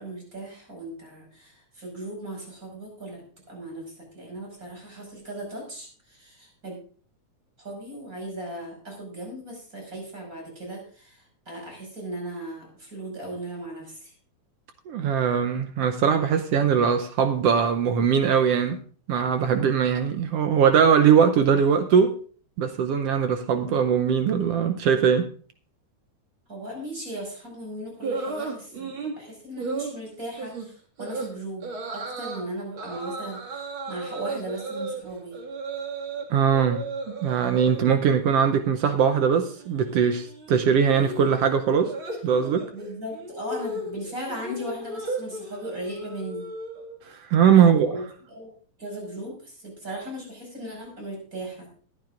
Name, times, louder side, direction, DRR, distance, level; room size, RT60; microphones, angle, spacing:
voice 1, 0.0-3.8 4.1-6.8 7.6-14.1 26.5-31.7 31.9-35.4 42.7-46.5 47.6-48.5 48.8-51.7, right 1 dB, 25° right, -1 dB, 5.8 m, -37 dB
voice 2, 14.9-18.8 19.1-22.2 22.6-25.3 36.3-36.8 37.2-41.9 42.2-42.7 47.1-47.9, right 7 dB, 70° right, 8 dB, 1.5 m, -21 dB
sound 1, 28.0-29.2 29.6-29.9 30.4-30.7 31.0-31.3 31.6-32.4 32.8-36.2 36.5-37.8 38.1-38.6 38.8-47.0, right 2 dB, 45° right, 2.6 m, -35 dB
20.5 x 10.5 x 2.5 m, 0.42 s
omnidirectional pair, 3.4 m